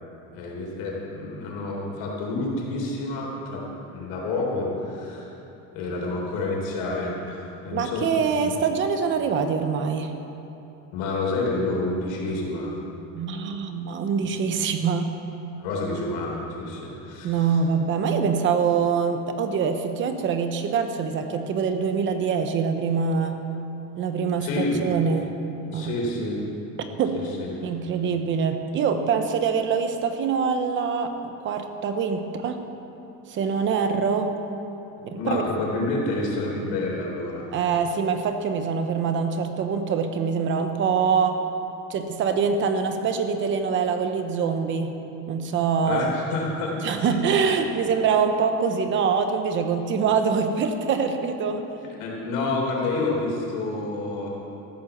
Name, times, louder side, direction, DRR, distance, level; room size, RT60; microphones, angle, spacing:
voice 1, 0.3-3.6 3.9-5.3 5.7-8.5 10.9-12.7 15.6-17.5 24.4-24.8 25.7-26.4 27.1-27.5 35.0-37.5 45.8-47.2 52.0-54.3, left 2 dB, 75° left, -2 dB, 4.1 m, -29 dB
voice 2, 7.7-10.1 13.1-15.1 17.2-23.4 24.0-25.4 25.7-25.9 26.8-27.2 27.6-32.6 33.3-34.4 35.1-35.4 37.5-41.4 41.9-45.0 45.3-46.1 46.8-51.6, right 6 dB, 35° right, 7 dB, 0.9 m, -24 dB
14.5 x 10.5 x 7.2 m, 3.0 s
cardioid pair, 175°, 36 cm